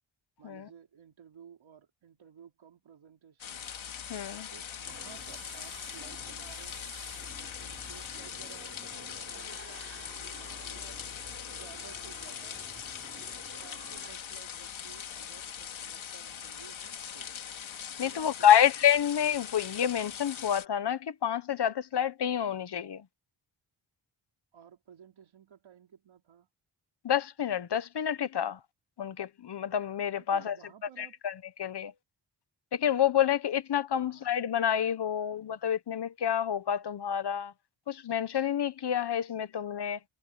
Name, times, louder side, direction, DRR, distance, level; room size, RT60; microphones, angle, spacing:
voice 1, 0.4-3.7 4.5-6.9 7.4-11.0 11.5-12.6 13.6-17.3 18.0-18.6 24.5-26.5 30.2-31.2 33.9-34.3, right 8 dB, 85° right, 4.8 m, -55 dB
sound 1, 3.4-20.6, left 8 dB, 85° left, 2.9 m, -41 dB
voice 2, 4.1-4.5 18.0-23.1 27.0-28.6 29.0-30.6 31.0-31.9 32.7-37.5 37.9-40.0, left 9 dB, 60° left, 1.2 m, -28 dB
sound 2, 4.8-14.1, right 4 dB, 30° right, 3.9 m, -51 dB
wide cardioid pair, 120°, 46 cm